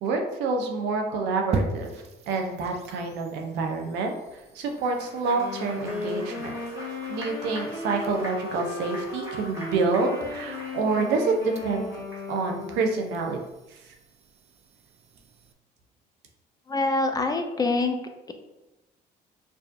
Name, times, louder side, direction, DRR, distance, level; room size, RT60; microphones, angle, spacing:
voice 1, 0.0-6.5 7.1-11.8 12.3-13.4 13.7-13.9, right 3 dB, 90° right, 3 dB, 0.6 m, -28 dB
sound 1, 1.5-15.5, right 3 dB, 40° right, 0.4 m, -41 dB
Applause, 4.6-12.5, equal, 15° right, 1.3 m, -43 dB
Wind instrument woodwind instrument, 5.3-13.3, left 2 dB, 70° left, 1.1 m, -36 dB
voice 2, 16.7-18.0, left 3 dB, 20° left, 5 dB, 0.4 m, -25 dB
4.6 x 2.5 x 2.6 m, 0.99 s
cardioid pair, 110°, 17 cm